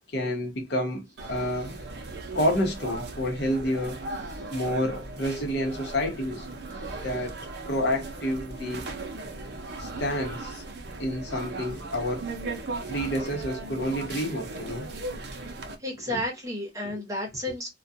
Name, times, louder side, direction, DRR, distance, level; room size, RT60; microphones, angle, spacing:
voice 1, 0.1-1.7 2.3-4.0 4.5-6.4 7.0-7.4 7.6-8.8 9.8-10.6 11.0-12.3 12.9-14.9 16.1-16.2 16.8-16.9, equal, 60° left, 0.8 m, -29 dB
sound 1, 1.2-15.8, right 2 dB, 60° right, 0.6 m, -37 dB
voice 2, 6.8-7.1 9.9-10.0 11.3-11.4 15.8-17.7, left 1 dB, 15° right, 0.9 m, -33 dB
2.3 x 2.2 x 2.6 m
head